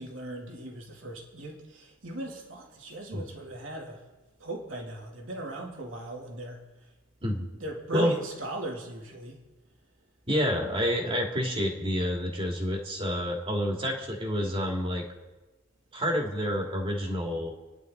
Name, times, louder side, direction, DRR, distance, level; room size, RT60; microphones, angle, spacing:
voice 1, 0.0-4.0 4.4-6.6 7.6-9.4, right 2 dB, 70° right, -1 dB, 2.9 m, -38 dB
voice 2, 10.3-15.0 15.9-17.5, equal, 25° right, 0 dB, 2.5 m, -28 dB
29.0 x 11.0 x 4.0 m, 1.2 s
head